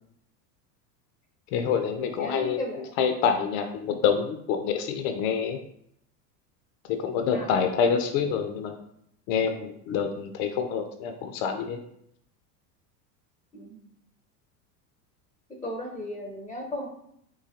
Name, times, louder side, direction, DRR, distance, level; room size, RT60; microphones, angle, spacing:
voice 1, 1.5-5.6 6.9-8.8 9.3-11.8, left 6 dB, 55° left, 6 dB, 0.5 m, -27 dB
voice 2, 2.0-3.0 7.3-7.5 13.5-13.9 15.6-16.9, left 1 dB, 10° left, 0 dB, 0.5 m, -36 dB
3.9 x 2.7 x 2.8 m, 0.72 s
hypercardioid pair, 95°, 48 cm